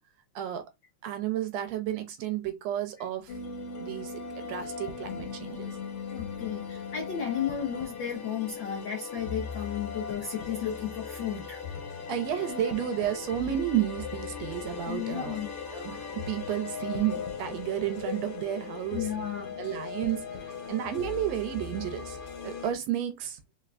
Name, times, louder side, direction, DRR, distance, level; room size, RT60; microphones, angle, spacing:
voice 1, 1.0-3.3 3.8-5.8 12.0-15.4 15.7-19.1 19.6-22.2 22.4-23.4, right 11 dB, 75° right, 1.8 m, -32 dB
sound 1, 3.3-22.7, left 6 dB, 60° left, 1.7 m, -38 dB
voice 2, 6.1-11.9 14.9-15.5 18.9-19.6, left 8 dB, 85° left, 1.0 m, -34 dB
4.4 x 3.6 x 2.5 m
omnidirectional pair, 3.3 m